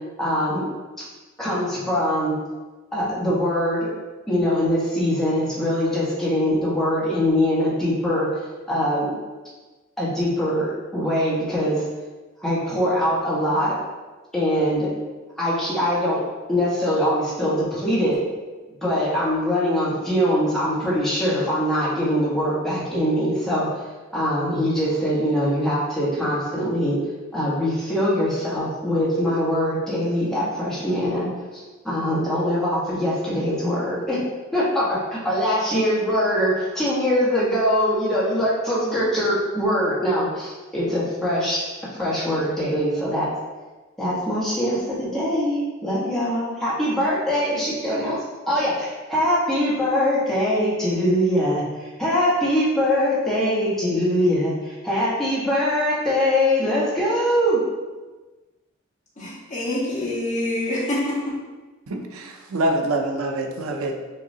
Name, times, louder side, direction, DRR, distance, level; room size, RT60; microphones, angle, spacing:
voice 1, 0.2-0.6 1.4-2.4 2.9-3.9 4.3-8.3 8.7-9.2 10.0-11.8 12.4-13.8 14.3-14.9 15.4-16.2 16.5-18.2 18.8-23.7 24.1-27.0 27.3-31.3 31.5-34.2 34.5-41.6 41.9-43.3 44.0-48.2 48.5-57.6, equal, ahead, -9 dB, 1.3 m, -22 dB
voice 2, 59.2-61.3, left 1 dB, 35° left, -10 dB, 1.3 m, -26 dB
voice 3, 61.9-64.0, right 1 dB, 80° right, 3 dB, 0.6 m, -25 dB
6.3 x 2.9 x 2.7 m, 1.2 s
head